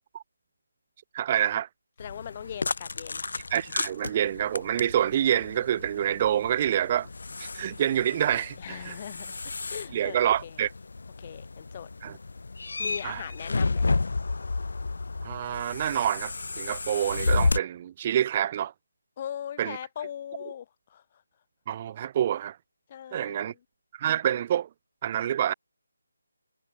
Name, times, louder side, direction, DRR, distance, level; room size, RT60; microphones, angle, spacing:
voice 1, 1.1-1.7 3.5-7.1 7.4-9.0 9.9-10.7 12.0-12.1 13.0-13.2 15.2-18.7 19.6-19.8 21.7-22.6 23.1-23.5 23.9-24.7 25.0-25.5, right 10 dB, 25° right, 0.4 m, -27 dB
sound 1, 2.0-17.6, left 3 dB, 65° left, 2.1 m, -32 dB
voice 2, 2.0-3.2 8.6-10.6 11.2-11.9 12.8-13.9 19.2-21.0 22.9-23.6, left 9 dB, 25° left, 2.1 m, -40 dB
figure-of-eight pair, 170°, 0 cm